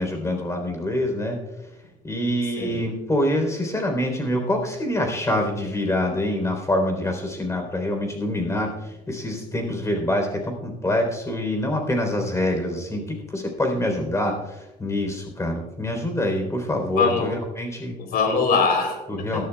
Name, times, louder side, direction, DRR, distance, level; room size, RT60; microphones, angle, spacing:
voice 1, 0.0-1.4 2.0-18.0 19.1-19.4, left 1 dB, 15° left, 4 dB, 3.8 m, -25 dB
voice 2, 17.0-17.3 18.0-19.4, left 5 dB, 65° left, 4 dB, 3.6 m, -22 dB
20.0 x 12.5 x 2.4 m, 1.0 s
cardioid pair, 110°, 17 cm